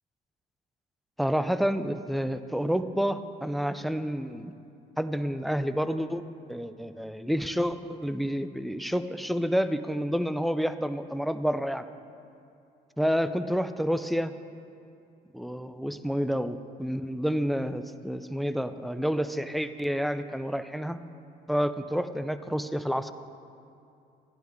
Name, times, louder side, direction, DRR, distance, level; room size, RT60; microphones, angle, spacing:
voice 1, 1.2-4.5 5.0-6.2 6.5-11.8 13.0-14.3 15.3-21.0 21.5-23.1, equal, ahead, 11 dB, 0.3 m, -29 dB
11.0 x 11.0 x 3.5 m, 2.7 s
cardioid pair, 110°, 17 cm